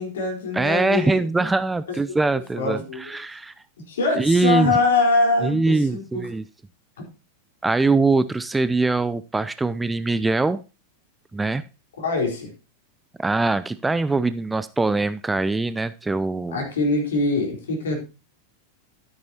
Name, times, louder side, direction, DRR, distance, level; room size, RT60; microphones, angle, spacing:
voice 1, 0.0-1.5 2.5-3.2 3.9-6.3 12.0-12.5 16.5-18.0, left 3 dB, 65° left, 1 dB, 4.4 m, -23 dB
voice 2, 0.5-3.5 4.1-4.8 5.4-6.4 7.6-10.6 11.3-11.6 13.2-16.6, right 3 dB, 10° right, 15 dB, 0.4 m, -22 dB
12.5 x 9.5 x 2.9 m, 0.30 s
figure-of-eight pair, 90°, 0 cm